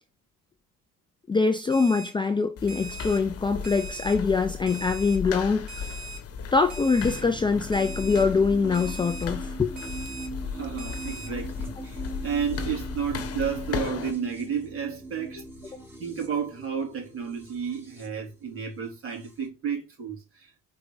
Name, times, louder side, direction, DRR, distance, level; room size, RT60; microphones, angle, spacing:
voice 1, 1.3-5.8 6.5-9.7, left 4 dB, 15° left, 0.5 m, -24 dB
Alarm, 1.7-2.1 2.7-3.2 3.6-4.1 4.7-5.2 5.7-6.2 6.7-7.2 7.7-8.2 8.7-9.2 9.8-10.3 10.8-11.3, right 4 dB, 60° right, 3.0 m, -40 dB
sound 1, 2.6-14.1, left 6 dB, 45° left, 1.3 m, -36 dB
sound 2, 7.0-19.5, right 2 dB, 5° right, 3.2 m, -41 dB
voice 2, 10.5-15.4 16.0-20.6, right 7 dB, 40° right, 3.6 m, -32 dB
5.1 x 4.7 x 4.9 m
cardioid pair, 135°, 33 cm